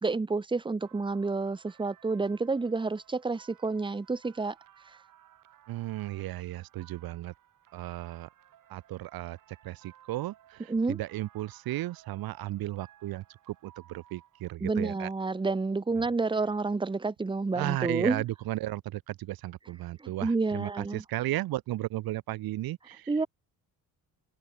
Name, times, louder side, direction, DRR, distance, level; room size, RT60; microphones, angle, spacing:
voice 1, 0.0-4.5 10.7-11.0 14.6-18.2 20.0-21.0 23.1-23.3, right 3 dB, 15° right, 1.5 m, -29 dB
sound 1, 0.8-14.5, right 11 dB, 60° right, 6.1 m, -59 dB
voice 2, 5.7-7.3 7.7-8.3 8.7-15.1 17.5-23.1, right 16 dB, 80° right, 1.1 m, -35 dB
open air
cardioid pair, 160°, 36 cm